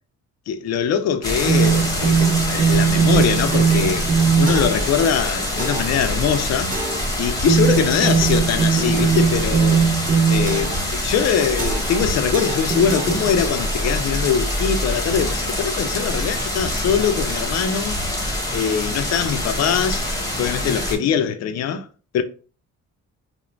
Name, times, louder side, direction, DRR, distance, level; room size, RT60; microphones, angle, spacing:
voice 1, 0.5-4.1 4.4-6.8 7.2-9.9 10.3-18.0 18.5-20.1 20.4-21.9 22.1-22.2, left 7 dB, 60° left, 0.4 m, -22 dB
sound 1, 1.2-21.0, left 1 dB, 10° left, 1.1 m, -25 dB
sound 2, 1.5-4.9 5.6-6.0 6.7-7.1 7.5-10.9 11.6-12.0 12.3-13.7, right 6 dB, 30° right, 0.5 m, -20 dB
2.4 x 2.1 x 3.1 m
cardioid pair, 90°, 30 cm